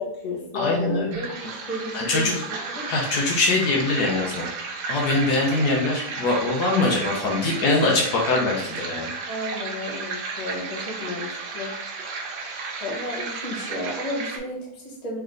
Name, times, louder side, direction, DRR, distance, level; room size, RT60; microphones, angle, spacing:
voice 1, 0.0-2.9 9.3-11.7 12.8-15.2, left 1 dB, 25° left, -4 dB, 1.0 m, -32 dB
voice 2, 0.5-1.1 1.9-2.3 2.9-4.5 4.9-9.1, left 2 dB, 70° left, -1 dB, 1.3 m, -23 dB
sound 1, 1.1-14.4, right 4 dB, 75° right, 1.3 m, -33 dB
3.4 x 3.3 x 3.7 m, 0.76 s
omnidirectional pair, 1.9 m